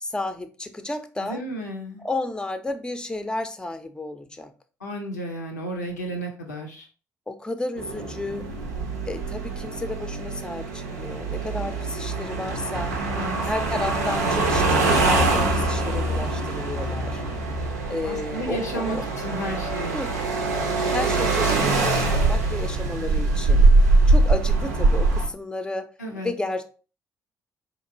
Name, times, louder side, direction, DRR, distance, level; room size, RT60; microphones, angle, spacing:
voice 1, 0.0-1.4 2.0-4.5 7.3-8.5 9.0-12.9 13.4-17.2 17.9-19.0 19.9-20.1 20.7-25.9 26.2-26.6, left 2 dB, 10° left, 0.5 m, -32 dB
voice 2, 1.2-2.0 4.8-6.9 13.1-13.7 18.0-19.9 26.0-26.3, right 1 dB, 85° left, 0.6 m, -33 dB
sound 1, 7.8-25.3, right 2 dB, 80° right, 0.5 m, -23 dB
4.1 x 2.9 x 2.6 m
figure-of-eight pair, 45°, 9 cm